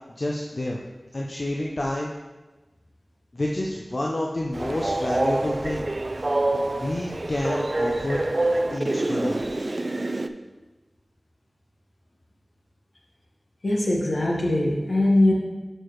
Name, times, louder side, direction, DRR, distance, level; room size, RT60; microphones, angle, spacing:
voice 1, 0.2-0.8 1.1-2.1 3.3-5.9 6.5-8.2 8.7-9.4, left 1 dB, 55° left, -2 dB, 0.6 m, -29 dB
Train, 4.5-10.3, right 2 dB, 50° right, 0.3 m, -26 dB
voice 2, 13.6-15.3, left 1 dB, 75° left, -2 dB, 1.3 m, -21 dB
6.7 x 4.5 x 4.6 m, 1.2 s
wide cardioid pair, 65°, 0 cm